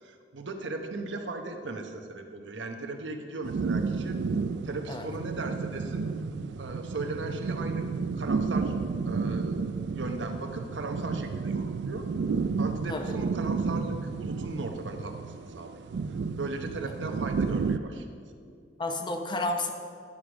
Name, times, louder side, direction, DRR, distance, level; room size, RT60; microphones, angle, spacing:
voice 1, 0.0-4.2 4.6-6.0 6.6-7.9 8.2-8.7 9.0-9.6 9.9-12.1 12.6-15.7 16.4-18.1, right 2 dB, 90° right, 5 dB, 0.9 m, -37 dB
sound 1, 3.4-17.8, right 4 dB, 65° right, 0.4 m, -31 dB
voice 2, 18.5-19.7, left 2 dB, 25° left, 4 dB, 0.8 m, -32 dB
11.0 x 4.9 x 6.1 m, 2.2 s
head